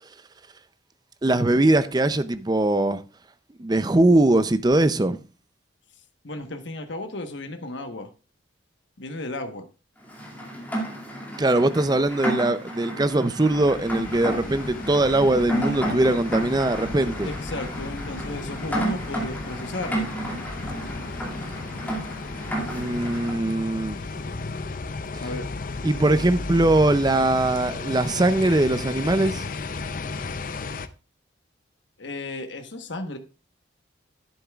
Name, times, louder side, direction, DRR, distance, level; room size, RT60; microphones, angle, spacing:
voice 1, 1.2-3.0 3.6-5.2 11.4-17.3 22.7-24.0 25.8-29.4, right 2 dB, 20° right, 0.5 m, -21 dB
voice 2, 6.2-8.1 9.0-9.7 17.2-20.1 25.2-25.5 32.0-33.2, left 2 dB, 70° left, 1.2 m, -34 dB
Rain, 10.1-23.4, right 1 dB, 10° left, 2.3 m, -32 dB
sound 1, 13.5-30.9, left 3 dB, 45° left, 0.5 m, -34 dB
11.0 x 10.0 x 2.4 m
head